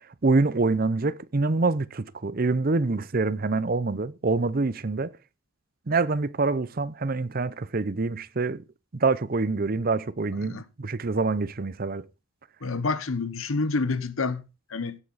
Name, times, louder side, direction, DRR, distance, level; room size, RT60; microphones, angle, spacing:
voice 1, 0.2-5.1 5.9-8.6 8.9-12.0, right 3 dB, 45° right, 0.7 m, -26 dB
voice 2, 12.6-15.0, left 3 dB, 85° left, 1.0 m, -28 dB
16.5 x 8.2 x 4.1 m
head